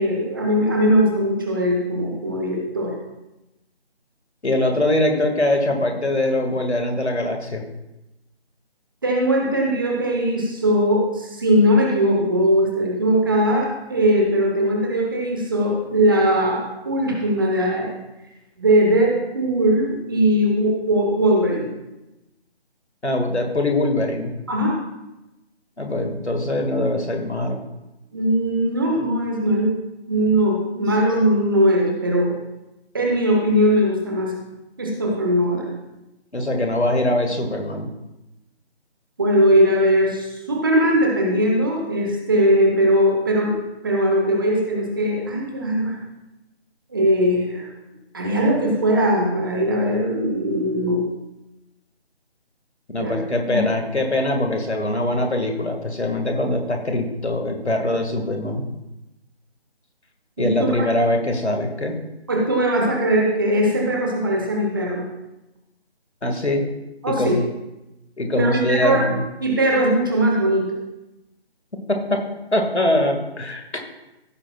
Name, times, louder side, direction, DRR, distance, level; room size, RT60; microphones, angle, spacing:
voice 1, 0.0-2.9 9.0-17.9 18.6-21.7 24.5-24.8 28.1-29.7 30.1-32.3 32.9-34.3 34.8-35.7 39.2-43.5 43.8-46.0 46.9-47.7 48.1-51.0 53.0-53.2 53.5-53.6 60.4-60.9 62.3-65.0 67.0-67.3 68.4-69.0 69.4-70.7, equal, 20° right, 0 dB, 1.0 m, -20 dB
voice 2, 4.4-7.6 23.0-24.3 25.8-27.6 36.3-37.9 52.9-58.7 60.4-61.9 66.2-66.6 67.1-67.4 68.2-69.2 71.9-72.2 72.5-73.6, left 1 dB, 90° left, 4 dB, 1.8 m, -22 dB
15.5 x 8.5 x 2.3 m, 0.96 s
figure-of-eight pair, 160°, 33 cm